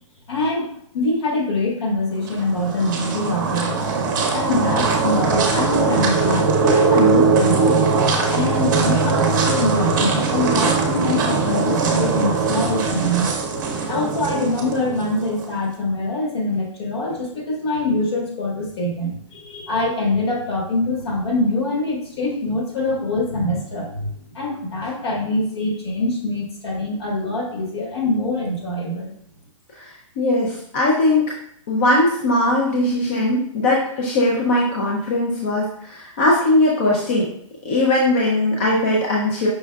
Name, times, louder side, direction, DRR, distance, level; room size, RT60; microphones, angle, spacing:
voice 1, 0.3-3.8 4.3-7.9 8.2-13.4 13.9-29.1, left 2 dB, 55° left, -1 dB, 1.4 m, -24 dB
sound 1, 2.2-15.5, right 4 dB, 40° right, 0.7 m, -20 dB
voice 2, 29.7-31.3 31.7-37.3 37.6-39.5, left 1 dB, 25° left, -3 dB, 0.4 m, -19 dB
5.4 x 3.6 x 2.2 m, 0.67 s
hypercardioid pair, 175°, 17 cm